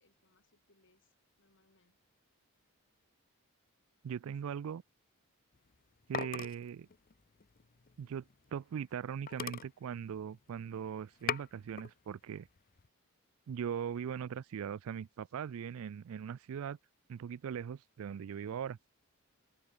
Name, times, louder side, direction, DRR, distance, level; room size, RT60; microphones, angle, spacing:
voice 1, 0.0-2.0 4.3-4.5, left 2 dB, 55° left, 7.6 m, -72 dB
voice 2, 4.0-4.8 6.1-6.9 8.0-8.2 8.5-12.5 13.5-16.8 17.1-18.8, right 8 dB, 65° right, 0.3 m, -40 dB
sound 1, 5.5-8.6 9.0-9.1 9.3-10.7 11.0-11.9 12.3-12.9, left 7 dB, 40° left, 0.6 m, -41 dB
open air
head